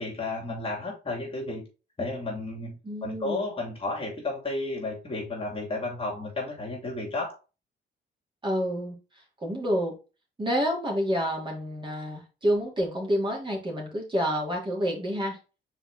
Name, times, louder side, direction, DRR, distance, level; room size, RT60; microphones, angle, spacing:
voice 1, 0.0-1.7 2.0-7.4, left 2 dB, 30° left, 2.8 m, -32 dB
voice 2, 2.8-3.4 8.4-9.0 9.4-9.9 10.4-15.4, equal, 25° right, 3.1 m, -28 dB
5.5 x 4.5 x 3.8 m
cardioid pair, 90°, 20 cm